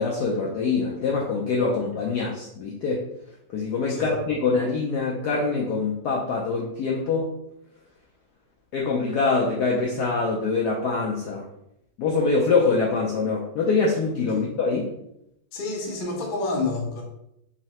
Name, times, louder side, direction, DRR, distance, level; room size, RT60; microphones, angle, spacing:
voice 1, 0.0-3.0 3.5-7.3 8.7-11.4 12.0-14.9, left 4 dB, 80° left, -2 dB, 0.9 m, -24 dB
voice 2, 15.5-17.0, left 3 dB, 65° left, -1 dB, 0.5 m, -29 dB
3.7 x 3.2 x 2.9 m, 0.79 s
omnidirectional pair, 2.2 m